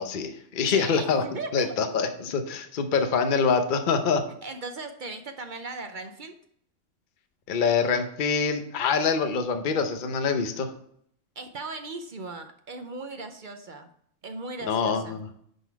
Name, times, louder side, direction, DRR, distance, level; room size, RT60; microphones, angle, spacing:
voice 1, 0.0-1.2 1.5-4.2 7.5-10.7 14.6-15.3, left 5 dB, 45° left, 7 dB, 0.8 m, -25 dB
voice 2, 0.7-2.0 4.4-6.4 11.4-13.9 14.2-15.2, right 3 dB, 50° right, 7 dB, 0.7 m, -38 dB
10.0 x 4.1 x 4.6 m, 0.66 s
omnidirectional pair, 1.4 m